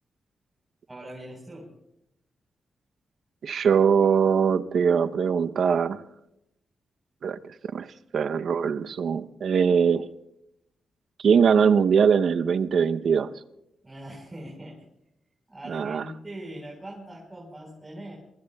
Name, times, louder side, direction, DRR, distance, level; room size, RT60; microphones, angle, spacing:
voice 1, 0.9-1.7 13.8-14.8 15.5-18.2, right 1 dB, 20° right, -3 dB, 4.3 m, -41 dB
voice 2, 3.4-6.0 7.2-7.4 7.7-7.9 8.1-10.1 11.2-13.3 15.7-16.0, right 6 dB, 70° right, 10 dB, 0.7 m, -22 dB
27.5 x 23.0 x 2.3 m, 0.85 s
cardioid pair, 80°, 0 cm